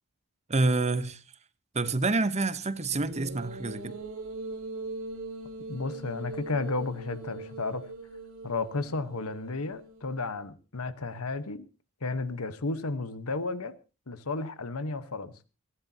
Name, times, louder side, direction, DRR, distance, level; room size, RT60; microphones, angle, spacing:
voice 1, 0.5-1.2 1.7-3.9, right 3 dB, 30° right, 0.9 m, -27 dB
sound 1, 2.9-10.3, right 2 dB, 70° right, 3.0 m, -41 dB
voice 2, 5.7-7.8 8.4-11.7 12.0-13.7 14.1-15.3, left 3 dB, 85° left, 1.2 m, -33 dB
29.5 x 11.5 x 2.8 m
head